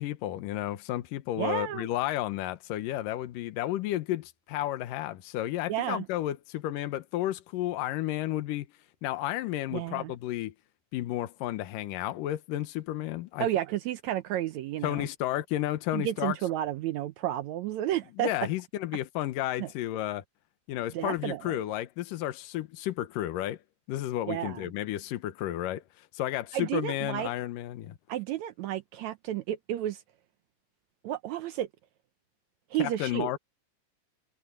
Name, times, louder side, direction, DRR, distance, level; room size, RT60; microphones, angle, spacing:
voice 1, 0.0-8.7 9.0-10.5 10.9-13.5 14.8-16.4 18.2-20.2 20.7-23.6 23.9-25.8 26.1-28.0 32.8-33.4, left 14 dB, 75° left, 2.6 m, -32 dB
voice 2, 1.4-1.9 5.7-6.1 9.7-10.1 13.4-15.1 15.9-18.3 19.6-19.7 20.9-21.6 24.3-24.6 26.5-27.3 28.1-30.0 31.0-31.7 32.7-33.3, right 13 dB, 80° right, 1.6 m, -31 dB
omnidirectional pair, 4.1 m